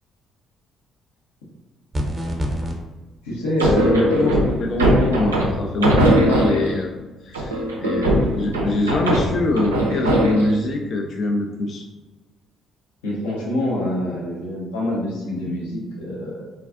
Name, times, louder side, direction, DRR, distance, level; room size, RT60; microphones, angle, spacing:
sound 1, 1.9-2.8, equal, 25° right, 0.7 m, -25 dB
voice 1, 3.2-4.4 13.0-16.5, left 1 dB, 75° left, -4 dB, 0.7 m, -25 dB
sound 2, 3.6-6.9 7.3-10.6, right 1 dB, 85° right, 0.3 m, -20 dB
voice 2, 3.9-6.9 7.2-11.8, left 2 dB, 50° left, 2 dB, 0.3 m, -24 dB
3.2 x 2.3 x 2.4 m, 1.2 s
figure-of-eight pair, 45°, 0 cm